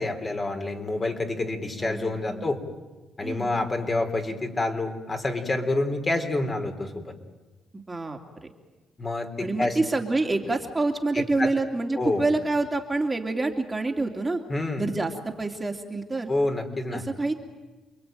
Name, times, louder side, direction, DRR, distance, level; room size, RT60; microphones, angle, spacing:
voice 1, 0.0-2.6 3.2-7.1 9.0-9.8 11.1-11.5 11.9-12.3 14.5-14.8 16.3-17.0, left 2 dB, 30° left, 4 dB, 3.9 m, -28 dB
voice 2, 1.8-2.4 3.2-3.5 7.7-8.2 9.4-14.4 14.8-16.3 16.9-17.3, right 2 dB, 20° right, 2 dB, 2.7 m, -27 dB
29.0 x 22.0 x 9.2 m, 1.2 s
cardioid pair, 90°, 0 cm